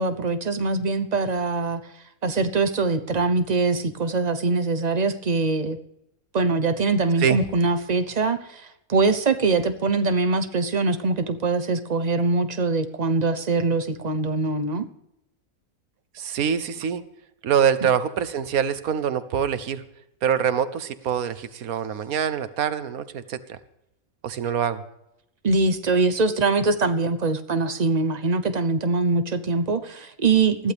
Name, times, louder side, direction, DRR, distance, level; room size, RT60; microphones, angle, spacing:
voice 1, 0.0-1.8 2.2-5.8 6.3-8.4 8.9-14.8 25.4-30.7, right 3 dB, 35° right, 9 dB, 0.9 m, -23 dB
voice 2, 16.1-17.0 17.4-19.8 20.2-23.6 24.2-24.8, right 8 dB, 80° right, 13 dB, 1.4 m, -24 dB
20.0 x 15.0 x 3.5 m, 0.84 s
omnidirectional pair, 1.5 m